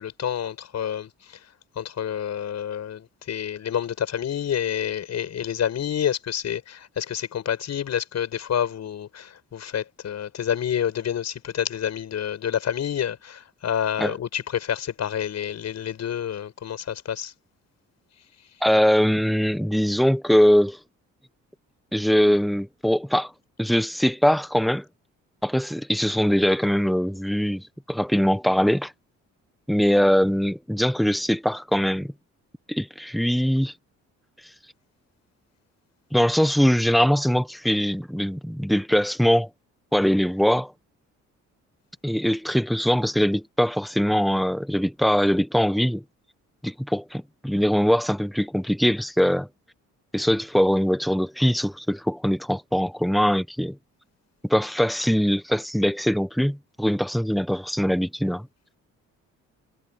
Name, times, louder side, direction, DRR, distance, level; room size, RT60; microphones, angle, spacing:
voice 1, 0.0-1.4 1.8-17.3, left 9 dB, 60° left, 7.2 m, -28 dB
voice 2, 18.6-20.8 21.9-23.3 23.6-24.8 25.4-28.9 29.7-32.1 32.7-33.7 36.1-39.5 39.9-40.7 42.0-46.0 46.6-49.5 50.1-53.8 54.4-58.5, equal, ahead, 1.3 m, -22 dB
cardioid pair, 90°, 30 cm